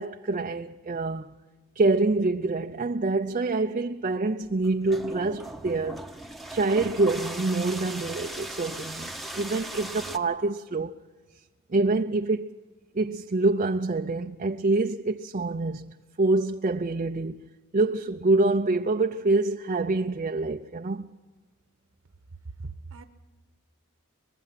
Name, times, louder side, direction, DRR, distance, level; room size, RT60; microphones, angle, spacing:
voice 1, 0.0-1.4 1.8-6.0 6.5-11.0 11.7-12.5 12.9-17.4 17.7-21.1, right 2 dB, 35° right, 0.5 m, -26 dB
sound 1, 4.4-10.2, right 1 dB, ahead, 1.0 m, -38 dB
voice 2, 22.3-23.0, right 3 dB, 65° right, 1.0 m, -40 dB
24.0 x 20.5 x 5.8 m
head